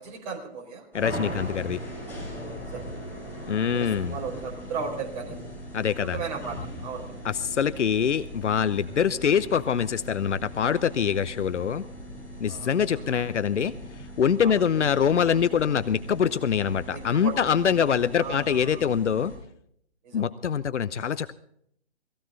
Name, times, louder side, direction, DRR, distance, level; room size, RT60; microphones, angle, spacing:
voice 1, 0.0-0.8 2.7-2.9 3.1-5.4 6.1-7.2 12.5-12.8 13.0-13.2 14.4-14.6 16.9-17.4 18.1-18.8 20.0-20.3, right 5 dB, 40° right, 0 dB, 4.4 m, -36 dB
voice 2, 0.9-1.8 3.5-4.2 5.7-6.2 7.2-11.8 12.4-13.7 14.2-19.3 20.1-21.3, left 7 dB, 90° left, 15 dB, 0.8 m, -24 dB
sound 1, 0.9-19.4, equal, 5° left, 7.6 m, -40 dB
18.0 x 16.0 x 3.8 m, 0.69 s
hypercardioid pair, 145°, 34 cm